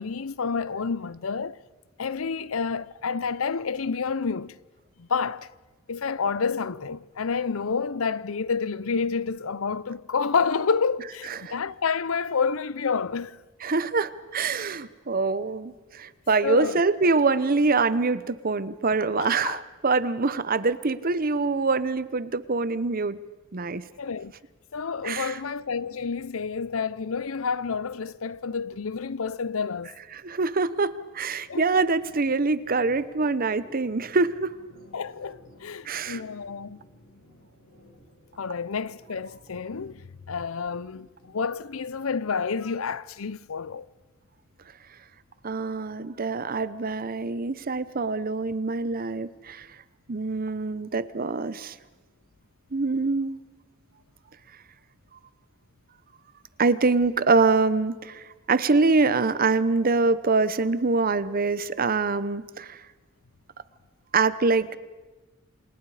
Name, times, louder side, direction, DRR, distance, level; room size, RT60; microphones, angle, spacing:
voice 1, 0.0-1.6 2.0-4.6 5.0-5.5 5.9-13.4 16.4-16.8 19.2-19.6 24.0-24.3 24.7-29.9 31.5-31.9 34.9-36.8 38.4-43.9, left 5 dB, 85° left, 0.7 m, -29 dB
voice 2, 13.6-23.2 23.5-23.8 25.0-25.4 30.1-34.5 35.8-36.2 45.4-49.7 50.1-51.8 52.7-53.4 56.6-62.8 64.1-64.8, right 3 dB, 45° right, 0.8 m, -25 dB
sound 1, 25.6-31.1 31.4-42.5, left 1 dB, 70° left, 5.9 m, -56 dB
28.0 x 27.5 x 5.0 m
head